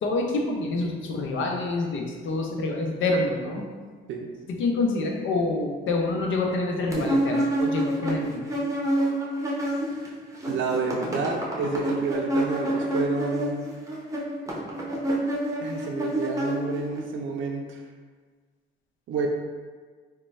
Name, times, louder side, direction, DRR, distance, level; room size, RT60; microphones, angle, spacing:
voice 1, 0.0-3.7 4.5-8.5, left 3 dB, 75° left, 1 dB, 0.6 m, -27 dB
sound 1, 6.9-10.1 10.3-17.0, right 1 dB, 15° right, 0.7 m, -27 dB
voice 2, 10.4-13.7 15.6-17.8 19.1-19.3, right 4 dB, 70° right, 2 dB, 0.4 m, -29 dB
3.1 x 2.2 x 4.1 m, 1.5 s
cardioid pair, 90°, 20 cm